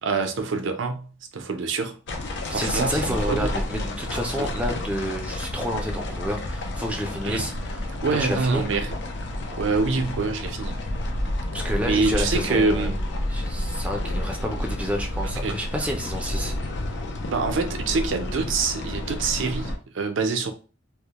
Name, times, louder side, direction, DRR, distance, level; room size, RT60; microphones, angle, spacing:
voice 1, 0.0-2.0 2.4-3.5 4.4-4.5 7.2-7.5 8.0-9.0 9.6-10.7 11.8-13.0 15.3-15.6 17.3-20.5, right 4 dB, 70° right, 0.5 m, -26 dB
sound 1, 2.1-19.8, left 1 dB, 65° left, 0.5 m, -30 dB
voice 2, 2.5-7.9 8.1-8.7 11.5-16.5 16.8-17.0, equal, 5° right, 0.4 m, -30 dB
2.3 x 2.1 x 2.8 m
head